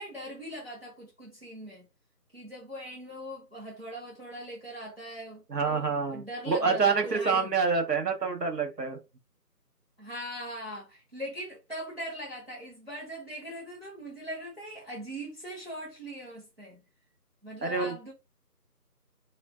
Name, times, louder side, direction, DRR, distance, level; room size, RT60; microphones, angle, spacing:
voice 1, 0.0-1.9 2.3-7.5 10.0-16.8 17.4-18.1, equal, 40° right, 0.9 m, -41 dB
voice 2, 5.5-9.0 17.6-17.9, right 5 dB, 80° right, 1.0 m, -27 dB
2.4 x 2.2 x 2.2 m
figure-of-eight pair, 170°, 48 cm